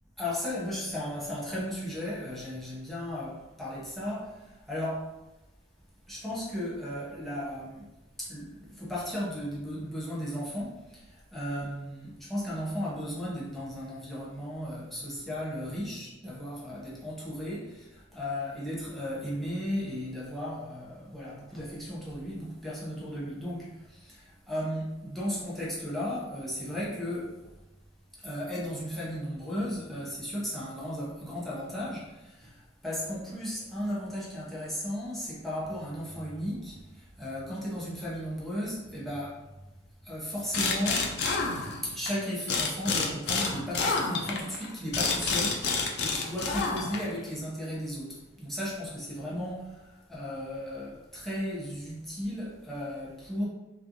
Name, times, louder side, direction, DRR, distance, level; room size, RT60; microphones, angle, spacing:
voice 1, 0.2-5.1 6.1-7.9 8.2-27.5 28.2-39.5 40.0-41.2 41.8-53.5, equal, ahead, -7 dB, 0.9 m, -35 dB
sound 1, 40.5-42.1 42.5-47.2, left 4 dB, 55° left, 0.5 m, -29 dB
3.3 x 3.2 x 2.6 m, 1.0 s
head